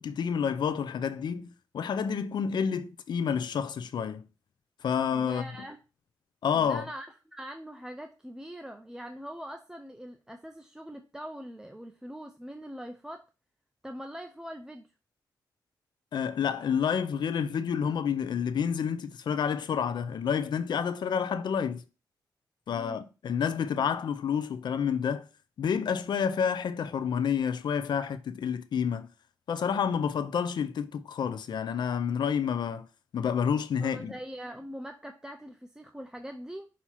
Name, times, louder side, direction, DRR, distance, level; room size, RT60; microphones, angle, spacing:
voice 1, 0.0-4.3 4.8-5.7 6.4-6.8 16.1-21.8 22.7-25.2 25.6-29.1 29.5-32.9 33.1-34.2, left 7 dB, 75° left, 0.6 m, -29 dB
voice 2, 5.1-5.8 6.5-13.3 13.8-14.9 22.7-23.0 33.8-36.7, equal, 10° right, 0.6 m, -42 dB
6.2 x 2.9 x 5.6 m
cardioid pair, 75°, 8 cm